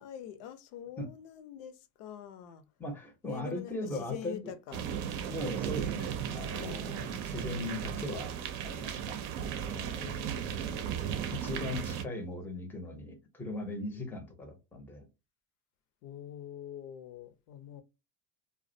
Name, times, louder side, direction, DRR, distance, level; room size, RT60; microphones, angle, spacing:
voice 1, 0.0-2.7 3.3-5.1 6.5-6.9 10.0-11.3 16.0-17.8, left 9 dB, 65° left, 0.6 m, -45 dB
voice 2, 2.8-4.4 5.3-8.3 8.6-10.1 11.3-15.1, left 1 dB, 5° left, 0.6 m, -39 dB
sound 1, 4.7-12.0, right 9 dB, 60° right, 0.6 m, -36 dB
2.3 x 2.1 x 2.6 m
hypercardioid pair, 95°, 47 cm